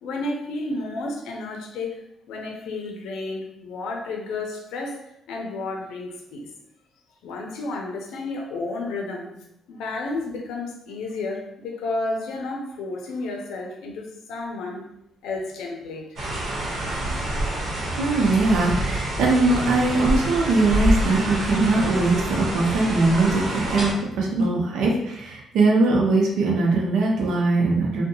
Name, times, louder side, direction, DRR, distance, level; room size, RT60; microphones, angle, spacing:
voice 1, 0.0-2.0 2.3-5.0 5.3-6.5 7.2-9.4 9.7-14.9 15.2-16.1, left 2 dB, 90° left, 1 dB, 0.5 m, -31 dB
sound 1, 16.2-23.9, right 1 dB, 65° right, 1.0 m, -27 dB
voice 2, 18.0-28.0, right 3 dB, 85° right, -2 dB, 0.6 m, -21 dB
2.6 x 2.2 x 2.7 m, 0.80 s
cardioid pair, 90°, 0 cm